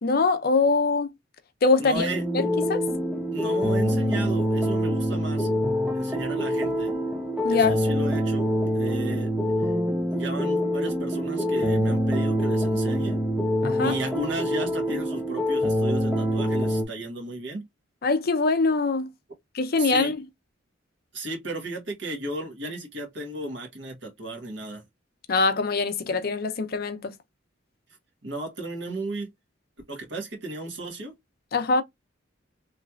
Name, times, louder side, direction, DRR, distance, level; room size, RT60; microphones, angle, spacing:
voice 1, 0.0-1.1 1.6-2.1 2.3-2.8 7.4-7.8 13.6-13.9 18.0-19.1 19.5-20.2 25.3-27.2 31.5-31.8, left 3 dB, 55° left, 0.5 m, -23 dB
voice 2, 1.8-2.2 3.3-5.5 5.9-6.9 7.5-8.5 8.7-9.3 9.6-9.7 10.0-13.2 13.8-17.7 19.8-20.1 21.1-24.8 28.2-29.3 29.9-31.1, right 1 dB, 70° right, 1.5 m, -34 dB
sound 1, 1.9-16.8, equal, 5° right, 0.5 m, -25 dB
3.2 x 2.9 x 2.4 m
head